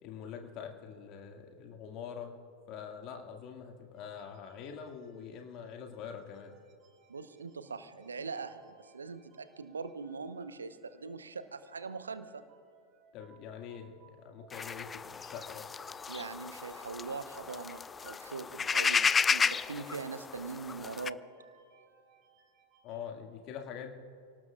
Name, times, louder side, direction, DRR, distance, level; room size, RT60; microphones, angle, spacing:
voice 1, 0.0-2.3 2.7-6.5 13.1-15.7 22.8-24.0, left 7 dB, 40° left, 3 dB, 2.1 m, -44 dB
sound 1, 3.9-23.1, right 6 dB, 35° right, 1.7 m, -66 dB
voice 2, 7.1-12.4 16.1-21.2, right 4 dB, 75° right, 12 dB, 1.0 m, -42 dB
sound 2, 14.5-21.1, left 5 dB, 15° left, 0.3 m, -33 dB
30.0 x 18.5 x 2.5 m, 2.4 s
figure-of-eight pair, 90°, 0 cm